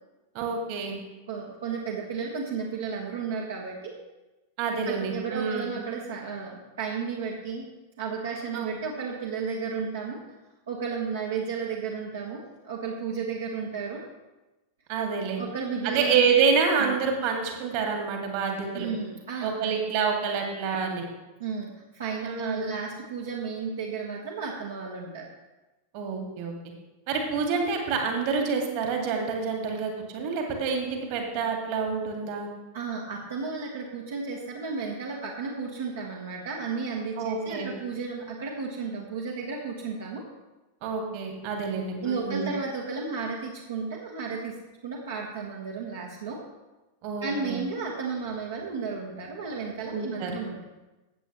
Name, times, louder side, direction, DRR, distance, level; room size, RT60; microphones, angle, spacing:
voice 1, 0.3-1.0 4.6-5.7 8.5-8.8 14.9-15.4 15.8-18.9 19.4-21.0 22.2-22.7 25.9-26.5 27.1-32.5 37.2-37.7 40.8-42.5 47.0-47.6 49.9-50.3, right 5 dB, 45° right, 2 dB, 2.2 m, -27 dB
voice 2, 1.3-3.9 4.8-7.7 8.0-10.2 10.7-14.0 15.4-16.2 16.8-16.9 18.7-19.7 21.4-25.3 32.7-40.2 42.0-44.6 44.8-46.4 47.2-50.6, right 5 dB, 65° right, -2 dB, 1.4 m, -33 dB
15.0 x 8.2 x 3.1 m, 1.1 s
figure-of-eight pair, 90°, 0 cm